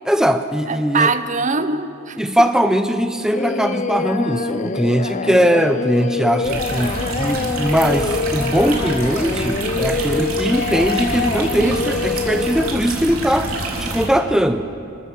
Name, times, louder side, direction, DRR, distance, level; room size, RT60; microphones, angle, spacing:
voice 1, 0.0-1.1 2.2-14.7, equal, 5° right, 7 dB, 0.6 m, -20 dB
voice 2, 0.7-2.5 11.6-11.9, right 4 dB, 35° right, 12 dB, 0.8 m, -23 dB
Singing, 3.3-12.7, left 4 dB, 35° left, 0.6 m, -25 dB
sound 1, 6.4-14.1, right 2 dB, 85° right, 3.5 m, -27 dB
27.0 x 13.5 x 7.7 m, 2.6 s
head